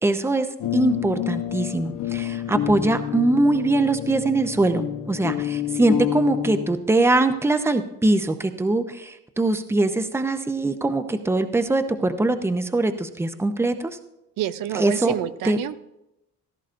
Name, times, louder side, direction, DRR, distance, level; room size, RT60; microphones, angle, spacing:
voice 1, 0.0-13.9 14.7-15.1 15.4-15.6, right 2 dB, 10° right, 9 dB, 0.6 m, -22 dB
sound 1, 0.6-6.8, left 11 dB, 80° left, 0.9 m, -28 dB
voice 2, 14.4-15.8, right 11 dB, 85° right, 12 dB, 0.6 m, -28 dB
16.0 x 13.0 x 2.6 m, 0.91 s
cardioid pair, 120°, 32 cm